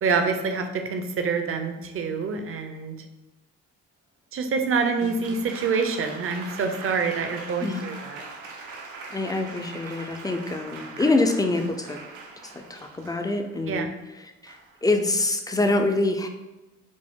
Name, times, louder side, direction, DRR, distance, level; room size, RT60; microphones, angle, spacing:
voice 1, 0.0-2.9 4.3-8.2 13.7-13.9, right 5 dB, 45° right, 6 dB, 0.6 m, -26 dB
Applause, 4.8-13.6 14.5-14.9, right 4 dB, 80° right, 0.8 m, -41 dB
voice 2, 9.1-12.0 12.5-13.9 14.2-16.3, left 2 dB, 10° left, 5 dB, 0.4 m, -25 dB
5.0 x 2.0 x 3.6 m, 1.1 s
cardioid pair, 90°, 30 cm